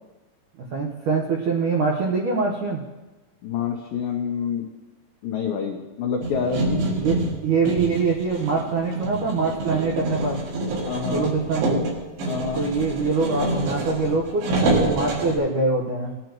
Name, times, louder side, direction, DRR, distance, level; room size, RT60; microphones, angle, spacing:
voice 1, 0.7-2.8 7.0-10.4 11.1-11.8 12.6-14.5 14.9-16.2, right 4 dB, 90° right, -1 dB, 1.8 m, -24 dB
voice 2, 3.4-4.7 5.2-6.8 10.9-11.3 12.3-12.6, left 6 dB, 90° left, 1 dB, 2.0 m, -27 dB
sound 1, 6.2-15.4, right 2 dB, 70° right, 4.4 m, -26 dB
19.5 x 11.0 x 3.0 m, 1.1 s
omnidirectional pair, 5.4 m